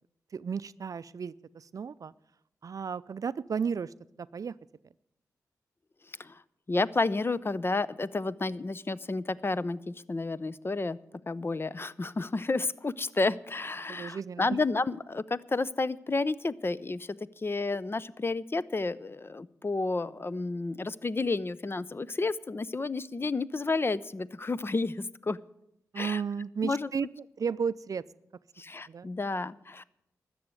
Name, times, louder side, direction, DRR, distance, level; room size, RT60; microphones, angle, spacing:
voice 1, 0.3-2.1 2.6-3.9 4.2-4.5 13.9-14.6 25.9-27.1 27.4-28.0 28.9-29.1, right 6 dB, 60° right, 17 dB, 0.4 m, -33 dB
voice 2, 6.1-6.4 6.7-11.0 11.3-25.4 26.0-26.2 26.6-26.9 28.6-29.8, left 3 dB, 35° left, 18 dB, 0.6 m, -31 dB
13.0 x 7.8 x 9.6 m, 0.81 s
cardioid pair, 45°, 7 cm